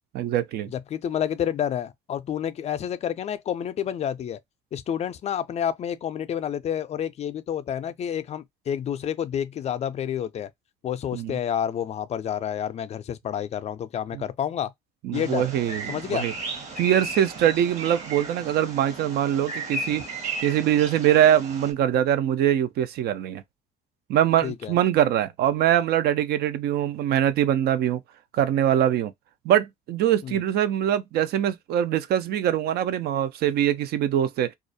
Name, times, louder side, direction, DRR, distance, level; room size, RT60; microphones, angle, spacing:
voice 1, 0.1-0.7 11.1-11.4 14.1-14.2 15.0-16.3 16.8-20.0 20.4-23.4 24.1-28.0 28.3-29.1 29.4-34.5, right 10 dB, 70° right, 0.4 m, -23 dB
voice 2, 0.7-4.4 4.7-10.5 10.8-14.7 15.1-15.5 15.9-16.3 24.4-24.7 30.2-30.4, left 9 dB, 40° left, 0.4 m, -29 dB
Bird vocalization bird call bird song, 15.1-21.7, right 2 dB, 45° right, 0.9 m, -35 dB
2.4 x 2.1 x 2.5 m
cardioid pair, 110°, 17 cm